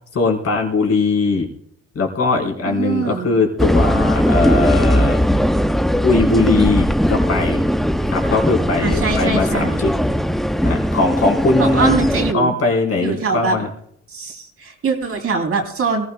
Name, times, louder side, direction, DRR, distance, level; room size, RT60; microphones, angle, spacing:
voice 1, 0.1-1.5 1.9-5.2 6.0-7.7 8.1-9.9 10.6-11.9 12.3-13.7, left 3 dB, 50° left, 0 dB, 4.2 m, -20 dB
voice 2, 2.7-3.3 8.8-9.7 11.6-12.5 13.0-13.6 14.1-16.1, right 4 dB, 50° right, 2 dB, 3.1 m, -22 dB
sound 1, 3.6-12.3, equal, ahead, 0.5 m, -18 dB
23.0 x 16.5 x 2.2 m, 0.70 s
cardioid pair, 90°, 30 cm